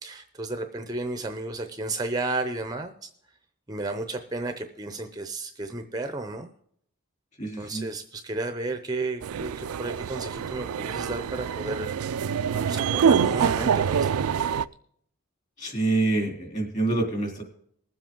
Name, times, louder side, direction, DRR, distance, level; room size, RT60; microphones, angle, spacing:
voice 1, 0.0-3.1 3.7-6.5 7.6-12.0 12.5-14.3, right 2 dB, 15° right, 7 dB, 0.6 m, -33 dB
voice 2, 7.4-7.8 15.6-17.4, right 2 dB, 35° left, 1 dB, 3.0 m, -26 dB
sound 1, 9.2-14.7, right 7 dB, 80° right, 0.4 m, -25 dB
20.0 x 7.6 x 3.7 m, 0.67 s
head